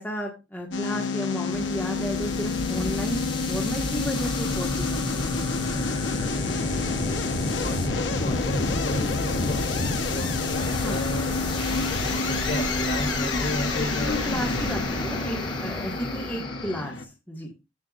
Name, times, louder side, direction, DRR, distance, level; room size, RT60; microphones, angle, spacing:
voice 1, 0.0-5.4 10.8-11.1 14.0-17.5, equal, 10° left, -1 dB, 1.9 m, -33 dB
sound 1, 0.7-17.0, left 3 dB, 85° left, 1.1 m, -28 dB
sound 2, 1.5-16.8, left 2 dB, 25° left, 2.1 m, -33 dB
voice 2, 7.6-11.3 11.7-14.2, left 1 dB, 60° left, 1 dB, 4.5 m, -33 dB
14.5 x 6.2 x 2.5 m, 0.27 s
head